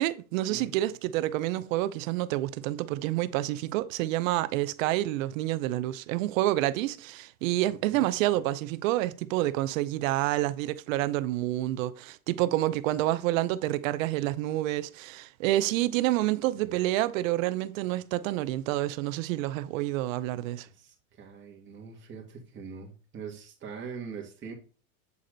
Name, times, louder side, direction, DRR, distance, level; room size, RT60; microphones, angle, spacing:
voice 1, 0.0-20.7, right 15 dB, 65° right, 0.7 m, -28 dB
voice 2, 20.7-24.5, right 6 dB, 25° right, 2.2 m, -42 dB
8.4 x 4.2 x 3.9 m
supercardioid pair, 145°, 44 cm